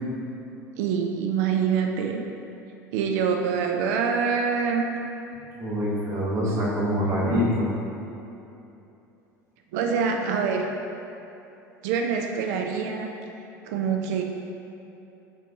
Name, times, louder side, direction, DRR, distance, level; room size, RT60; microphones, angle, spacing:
voice 1, 0.8-2.2 2.9-4.9 6.5-6.6 9.7-10.7 11.8-13.1 13.6-14.2, right 6 dB, 55° right, 2 dB, 0.4 m, -25 dB
voice 2, 5.6-7.7, equal, 30° right, -8 dB, 1.1 m, -25 dB
3.7 x 3.6 x 3.7 m, 2.9 s
figure-of-eight pair, 70°, 10 cm